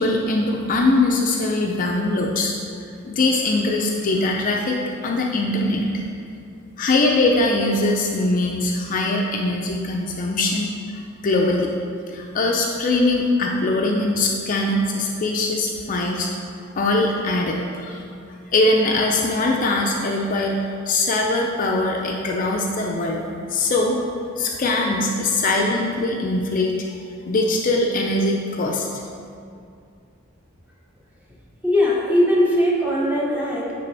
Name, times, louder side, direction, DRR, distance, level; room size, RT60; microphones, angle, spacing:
voice 1, 0.0-2.5 3.0-5.9 6.8-10.7 11.2-11.7 12.1-16.3 16.8-18.0 18.5-20.6 20.9-24.0 24.4-26.8 27.3-29.0, left 2 dB, 40° left, 0 dB, 0.4 m, -21 dB
voice 2, 31.6-33.7, left 1 dB, 10° right, -5 dB, 1.0 m, -19 dB
9.7 x 3.4 x 3.4 m, 2.3 s
head